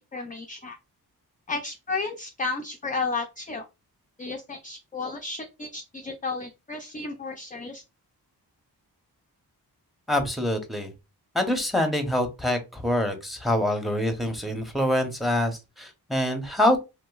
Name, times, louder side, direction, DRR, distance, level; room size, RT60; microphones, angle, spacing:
voice 1, 0.1-0.8 1.5-3.7 4.2-7.8, left 3 dB, 20° left, 4 dB, 0.4 m, -33 dB
voice 2, 10.1-10.9 11.3-16.8, left 1 dB, ahead, 5 dB, 0.8 m, -25 dB
2.9 x 2.7 x 2.3 m, 0.25 s
cardioid pair, 55°, 40 cm